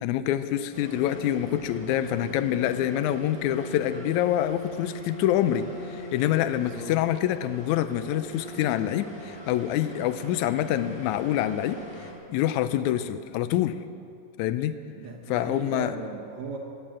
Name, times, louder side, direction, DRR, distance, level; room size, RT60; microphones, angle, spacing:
voice 1, 0.0-11.8 12.3-13.8 14.4-14.7 15.3-15.9, left 12 dB, 90° left, 12 dB, 1.7 m, -26 dB
sound 1, 0.7-12.1, left 1 dB, 10° left, 2.6 m, -41 dB
voice 2, 6.5-7.0 14.9-16.6, right 4 dB, 65° right, 0 dB, 2.2 m, -38 dB
16.0 x 9.2 x 8.9 m, 2.5 s
omnidirectional pair, 4.0 m